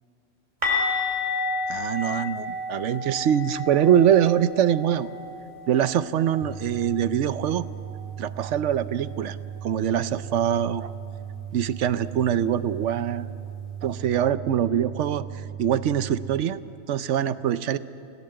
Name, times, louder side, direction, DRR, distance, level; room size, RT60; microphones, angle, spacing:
sound 1, 0.6-6.4 6.7-6.9 7.2-7.4 10.6-10.7, left 3 dB, 25° right, 3.3 m, -31 dB
voice 1, 1.7-5.1 5.7-7.7 8.2-9.4 9.6-10.9 11.5-13.3 13.8-15.2 15.6-16.6 16.9-17.8, right 9 dB, 70° right, 14 dB, 1.0 m, -23 dB
sound 2, 6.4-16.4, right 8 dB, 10° left, 2.5 m, -37 dB
29.0 x 17.5 x 7.8 m, 2.7 s
omnidirectional pair, 1.3 m